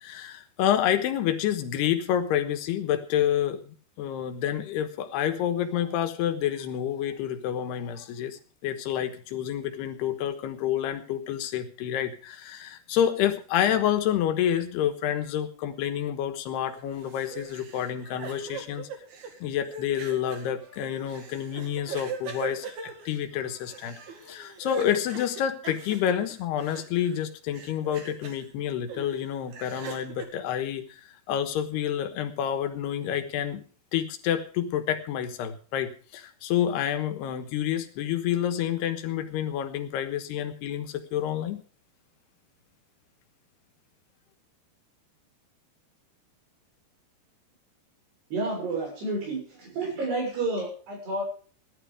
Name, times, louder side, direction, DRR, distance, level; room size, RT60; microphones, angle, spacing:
voice 1, 0.0-18.9 19.4-24.0 24.3-33.6 33.9-41.6, left 10 dB, 75° left, 7 dB, 3.3 m, -28 dB
sound 1, 16.7-27.2 27.5-28.4 28.9-30.3, right 5 dB, 50° right, 3.1 m, -41 dB
voice 2, 48.3-51.2, right 2 dB, 75° right, 0 dB, 8.9 m, -30 dB
16.0 x 11.5 x 5.0 m, 0.41 s
omnidirectional pair, 4.9 m